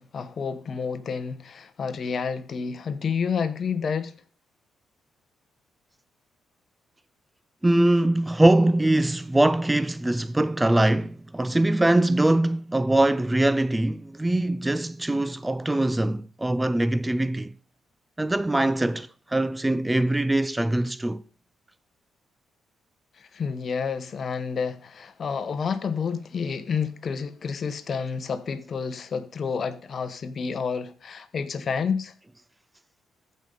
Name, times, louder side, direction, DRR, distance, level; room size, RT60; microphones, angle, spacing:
voice 1, 0.0-4.1 23.2-32.1, left 6 dB, 50° left, 1.0 m, -29 dB
voice 2, 7.6-17.6 18.2-21.2, right 1 dB, 10° right, 0.4 m, -22 dB
14.5 x 5.3 x 3.9 m
cardioid pair, 90°, 0 cm